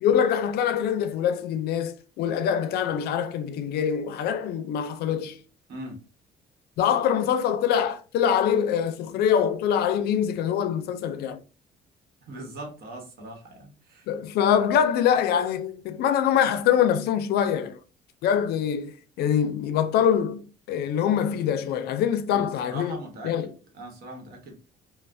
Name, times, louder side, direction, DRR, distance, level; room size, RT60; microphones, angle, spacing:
voice 1, 0.0-5.4 6.8-11.4 14.1-17.8 18.2-23.0 23.2-23.5, left 8 dB, 70° left, 0.4 m, -24 dB
voice 2, 5.7-6.0 12.2-14.1 22.3-24.5, right 1 dB, 65° right, 1.0 m, -40 dB
3.1 x 2.0 x 2.5 m
cardioid pair, 110°, 17 cm